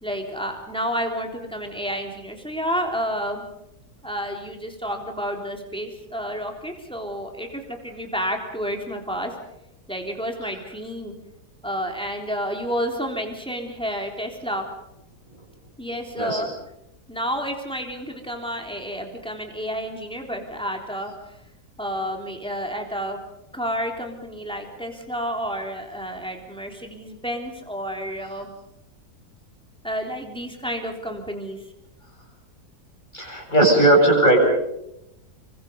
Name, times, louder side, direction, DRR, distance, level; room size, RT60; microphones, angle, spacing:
voice 1, 0.0-3.4 4.0-9.3 9.9-11.1 11.6-14.7 15.8-16.5 17.1-21.1 21.8-23.2 23.5-28.5 29.8-31.6, equal, 5° left, 2 dB, 3.5 m, -30 dB
voice 2, 33.1-34.5, right 1 dB, 25° left, -1 dB, 7.8 m, -17 dB
27.0 x 24.5 x 5.4 m, 0.84 s
omnidirectional pair, 1.8 m